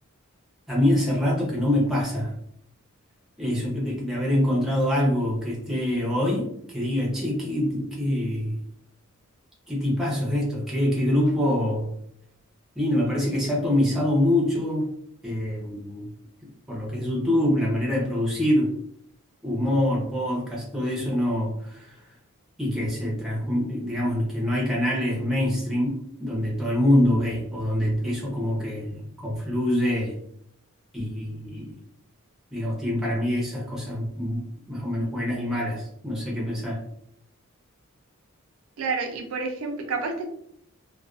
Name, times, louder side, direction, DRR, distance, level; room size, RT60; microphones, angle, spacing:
voice 1, 0.7-2.3 3.4-8.6 9.7-12.0 12.8-14.9 15.2-16.1 16.7-18.7 19.4-22.0 22.6-30.1 30.9-31.8 32.5-36.9, left 1 dB, ahead, -4 dB, 0.6 m, -25 dB
voice 2, 38.8-40.3, right 4 dB, 70° right, 3 dB, 0.4 m, -29 dB
2.4 x 2.2 x 2.3 m, 0.70 s
head